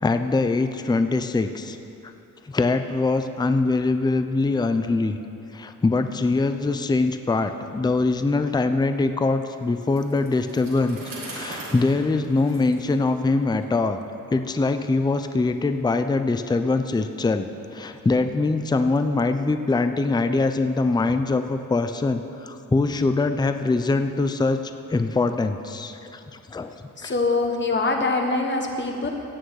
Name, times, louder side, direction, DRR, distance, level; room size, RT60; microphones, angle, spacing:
voice 1, 0.0-1.8 2.5-5.2 5.5-11.0 11.3-14.0 14.3-26.7 27.0-27.1, left 3 dB, 15° left, 8 dB, 0.5 m, -23 dB
Bicycle, 9.8-13.6, right 2 dB, 80° right, 2.9 m, -40 dB
voice 2, 27.0-29.1, left 3 dB, 35° left, 2 dB, 1.3 m, -24 dB
16.0 x 9.0 x 4.8 m, 2.8 s
wide cardioid pair, 125°, 33 cm